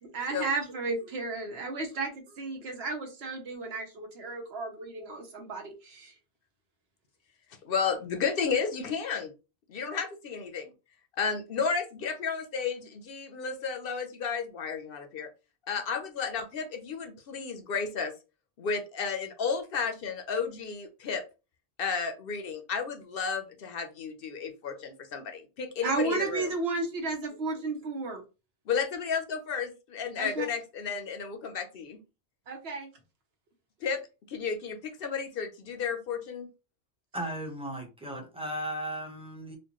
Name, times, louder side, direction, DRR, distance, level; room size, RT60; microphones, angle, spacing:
voice 1, 0.0-2.1 2.4-6.1 25.8-28.2 30.2-30.5 32.5-32.9, right 3 dB, 75° right, 2 dB, 1.2 m, -33 dB
voice 2, 7.6-9.3 9.7-10.7 11.2-15.3 15.7-18.1 18.6-21.2 21.8-26.5 28.7-32.0 33.8-34.0 34.3-36.5, left 6 dB, 65° left, 7 dB, 0.7 m, -32 dB
voice 3, 37.1-39.6, equal, 5° right, 1 dB, 0.8 m, -36 dB
4.2 x 2.2 x 2.9 m, 0.30 s
omnidirectional pair, 1.1 m